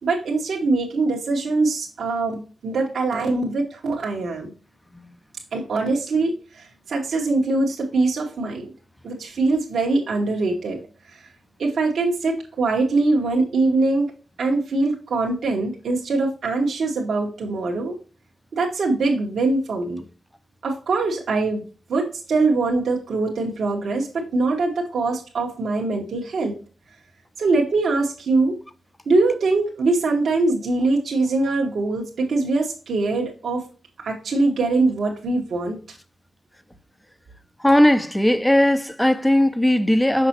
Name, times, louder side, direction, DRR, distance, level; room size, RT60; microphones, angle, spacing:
voice 1, 0.0-4.5 5.5-8.7 9.0-10.8 11.1-11.3 11.6-14.1 14.4-18.0 18.5-20.0 20.6-21.6 21.9-26.5 27.4-28.6 29.1-33.6 34.0-35.8, right 3 dB, 70° right, 1.3 m, -22 dB
voice 2, 37.6-40.3, left 1 dB, 5° left, 0.6 m, -18 dB
6.1 x 5.9 x 2.9 m
wide cardioid pair, 100°, 0 cm